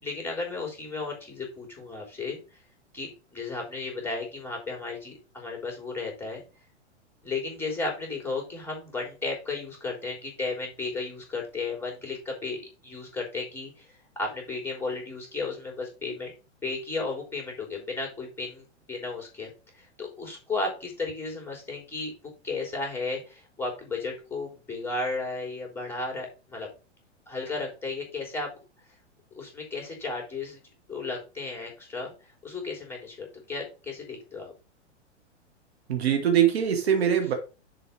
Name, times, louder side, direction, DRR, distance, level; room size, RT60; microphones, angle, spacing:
voice 1, 0.0-2.4 2.9-6.4 7.2-13.8 14.1-16.3 16.6-19.5 19.8-22.1 22.4-26.7 27.3-28.5 29.4-30.6 30.9-32.1 32.4-34.5, left 3 dB, 5° left, 0 dB, 3.2 m, -34 dB
voice 2, 35.9-37.3, right 9 dB, 60° right, 5 dB, 1.8 m, -22 dB
6.9 x 4.7 x 5.3 m, 0.32 s
figure-of-eight pair, 105°, 36 cm